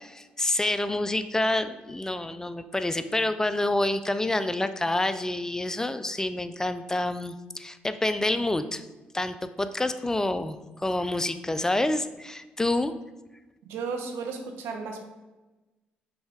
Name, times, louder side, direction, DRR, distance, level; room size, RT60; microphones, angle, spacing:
voice 1, 0.0-8.8 9.1-12.9, left 2 dB, 15° left, 11 dB, 0.4 m, -28 dB
voice 2, 13.6-15.0, right 5 dB, 85° right, 4 dB, 0.8 m, -34 dB
6.0 x 3.3 x 4.8 m, 1.1 s
supercardioid pair, 70°, 4 cm